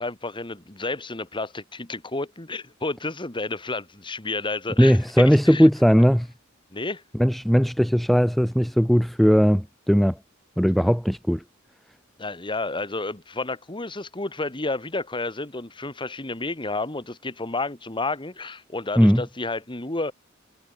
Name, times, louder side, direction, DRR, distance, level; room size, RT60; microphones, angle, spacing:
voice 1, 0.0-5.7 6.7-7.0 12.2-20.1, left 3 dB, 25° left, 1.9 m, -31 dB
voice 2, 4.8-6.3 7.1-10.2 10.6-11.4 19.0-19.2, equal, ahead, 0.5 m, -18 dB
head